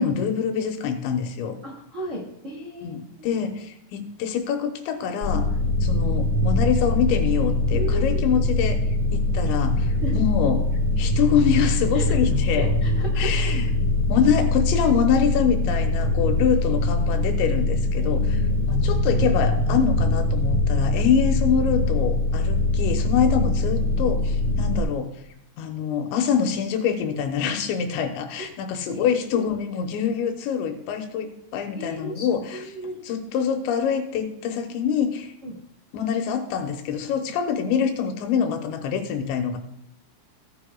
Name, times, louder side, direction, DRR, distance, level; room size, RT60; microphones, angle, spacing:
voice 1, 0.0-1.6 2.8-5.5 5.8-8.9 9.1-10.6 11.0-12.7 13.2-13.6 14.1-18.4 18.7-25.1 25.6-32.6 33.0-35.3 35.9-39.6, left 7 dB, 80° left, 5 dB, 3.2 m, -25 dB
voice 2, 1.6-3.3 6.0-6.4 7.7-8.4 10.0-10.2 11.9-12.1 12.6-13.5 17.9-18.7 24.5-24.6 28.9-29.1 29.3-29.4 31.7-33.0 35.4-35.5, right 1 dB, 40° right, -4 dB, 1.0 m, -35 dB
sound 1, 5.2-24.8, left 2 dB, 20° right, 1.6 m, -22 dB
16.5 x 10.0 x 2.3 m, 0.78 s
omnidirectional pair, 5.2 m